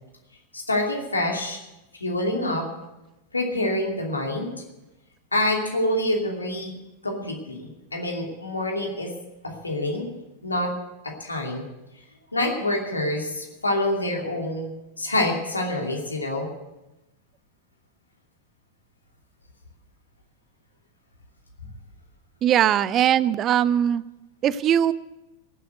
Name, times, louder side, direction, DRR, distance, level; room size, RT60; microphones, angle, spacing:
voice 1, 0.5-1.6 1.9-2.7 3.3-4.5 5.3-6.7 7.0-9.1 9.4-10.1 10.4-10.7 11.0-11.6 12.3-14.7 15.0-16.5, left 1 dB, 80° left, 1 dB, 2.7 m, -26 dB
voice 2, 22.4-24.0 24.4-24.9, right 10 dB, 30° right, 18 dB, 0.5 m, -20 dB
16.5 x 7.8 x 7.9 m, 0.98 s
figure-of-eight pair, 90°, 0 cm